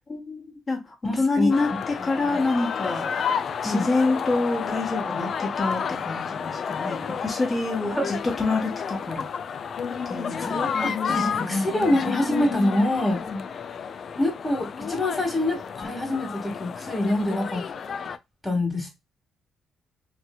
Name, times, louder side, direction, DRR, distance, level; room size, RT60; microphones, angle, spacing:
voice 1, 0.1-3.1 3.6-9.2 10.0-10.4 10.7-11.8 13.3-13.4, left 3 dB, 30° left, 1.2 m, -27 dB
voice 2, 1.0-1.5 2.2-2.3 3.6-3.8 7.9-8.1 10.4-13.2 14.2-17.6 18.4-18.9, left 1 dB, 10° left, 1.6 m, -25 dB
sound 1, 1.5-18.2, left 6 dB, 55° left, 0.4 m, -31 dB
3.1 x 2.9 x 2.3 m
cardioid pair, 90°, 0 cm